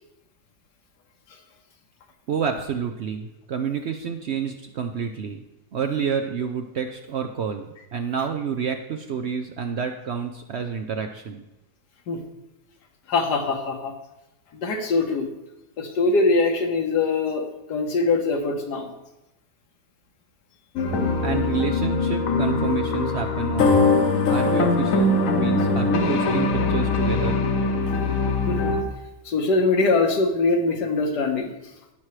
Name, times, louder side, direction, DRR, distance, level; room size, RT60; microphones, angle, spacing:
voice 1, 2.3-5.4 5.7-11.4 21.2-24.0 24.3-27.4, right 6 dB, 70° right, 6 dB, 0.6 m, -29 dB
voice 2, 13.1-13.9 14.5-15.3 15.8-18.9 28.5-28.8 29.3-31.7, left 3 dB, 80° left, 4 dB, 1.7 m, -23 dB
sound 1, 20.8-28.8, left 3 dB, 60° left, 1.2 m, -22 dB
16.0 x 6.1 x 3.2 m, 0.93 s
omnidirectional pair, 1.7 m